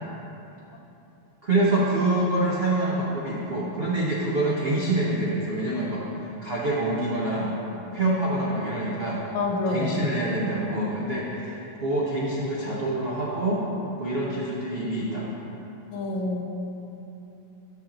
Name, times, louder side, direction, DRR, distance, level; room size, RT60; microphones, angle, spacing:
voice 1, 1.4-6.0 6.4-7.5 7.9-9.2 9.7-13.6 14.0-15.4, right 1 dB, 65° right, -6 dB, 0.5 m, -26 dB
voice 2, 9.3-9.9 15.9-16.4, left 2 dB, 80° left, 1 dB, 1.6 m, -27 dB
7.3 x 5.6 x 3.9 m, 2.9 s
omnidirectional pair, 2.2 m